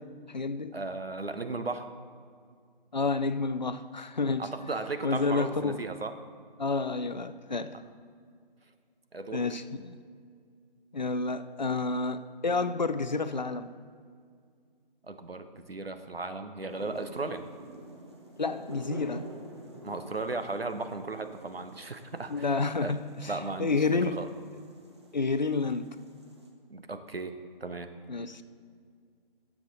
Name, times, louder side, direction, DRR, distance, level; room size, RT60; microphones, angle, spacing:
voice 1, 0.0-0.7 2.9-4.5 5.0-5.8 6.6-7.8 9.3-10.0 10.9-13.7 18.4-19.3 22.3-23.3 23.6-24.2 25.1-26.0 28.1-28.4, left 4 dB, 50° left, 12 dB, 0.5 m, -30 dB
voice 2, 0.7-1.9 4.4-6.1 9.1-9.5 15.1-17.4 19.8-22.5 22.8-22.9 23.3-24.3 26.7-27.9, right 3 dB, 85° right, 8 dB, 1.0 m, -36 dB
sound 1, 16.7-26.5, right 1 dB, 30° right, 0.9 m, -48 dB
16.5 x 7.3 x 4.0 m, 2.1 s
figure-of-eight pair, 160°, 29 cm